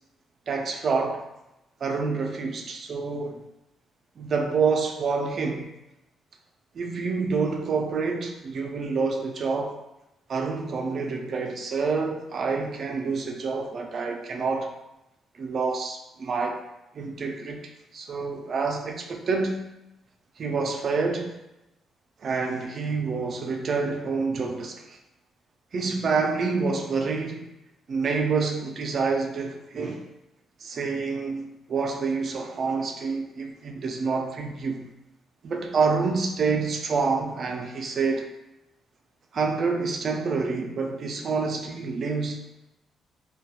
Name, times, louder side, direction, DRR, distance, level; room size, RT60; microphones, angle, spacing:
voice 1, 0.5-1.3 1.8-3.4 4.2-5.7 6.7-9.8 10.3-14.7 15.3-16.6 16.9-17.6 17.9-19.6 20.4-21.4 22.2-25.0 25.7-27.4 27.9-30.0 30.6-34.9 35.4-38.3 39.3-42.4, right 4 dB, 50° right, 3 dB, 0.4 m, -27 dB
2.6 x 2.2 x 2.3 m, 0.92 s
cardioid pair, 90°, 0 cm